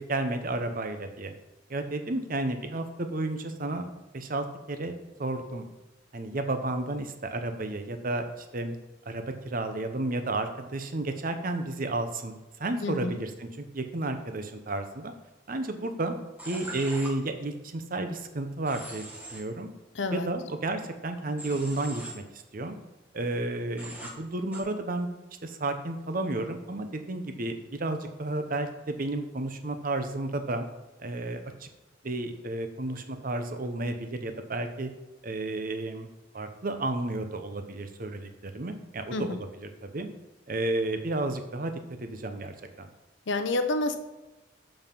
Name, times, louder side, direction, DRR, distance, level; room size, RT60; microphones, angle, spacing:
voice 1, 0.0-1.3 1.7-3.9 4.1-4.9 5.2-5.7 6.1-8.8 9.1-15.1 15.5-16.2 16.5-19.7 20.1-22.2 22.5-22.8 23.1-25.1 25.4-30.7 31.0-31.7 32.0-34.9 35.2-36.1 36.3-40.1 40.5-41.7 42.0-42.9, right 2 dB, 45° right, 7 dB, 0.8 m, -32 dB
voice 2, 12.8-13.2 19.9-20.3 39.1-39.4 43.3-44.0, left 2 dB, 70° left, 8 dB, 0.7 m, -28 dB
Human voice / Train, 16.4-17.1 18.7-19.4 21.4-22.1 23.8-24.1 24.5-24.6, right 2 dB, 10° right, 1.3 m, -41 dB
7.1 x 5.5 x 5.3 m, 1.1 s
head